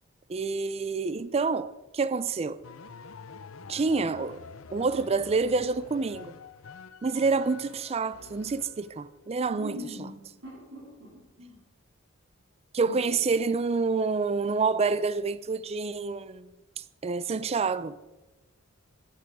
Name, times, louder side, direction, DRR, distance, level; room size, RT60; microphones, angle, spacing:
voice 1, 0.3-2.6 3.7-4.4 4.7-6.3 7.0-9.7 12.7-16.5 17.0-17.9, right 4 dB, 30° right, 0.4 m, -27 dB
sound 1, 2.6-9.1, left 5 dB, 75° left, 0.6 m, -47 dB
voice 2, 9.5-11.6 12.8-13.2, equal, 90° right, 4.0 m, -42 dB
10.5 x 9.2 x 4.9 m
head